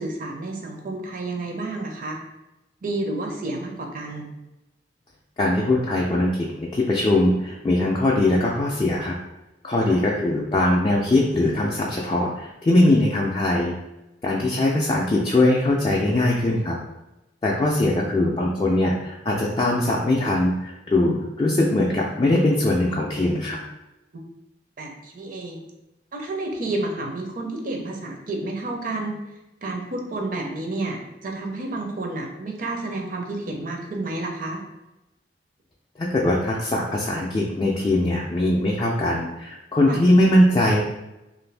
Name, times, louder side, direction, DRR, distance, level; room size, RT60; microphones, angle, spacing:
voice 1, 0.0-2.2 2.8-4.3 9.9-10.0 24.8-25.6 26.1-29.1 29.6-34.6 39.9-40.0, right 2 dB, 50° right, 2 dB, 0.5 m, -30 dB
voice 2, 5.4-6.5 6.7-9.1 9.6-13.7 14.2-16.7 17.4-23.6 36.0-40.8, left 1 dB, 25° left, -3 dB, 0.3 m, -21 dB
2.6 x 2.5 x 3.2 m, 0.97 s
head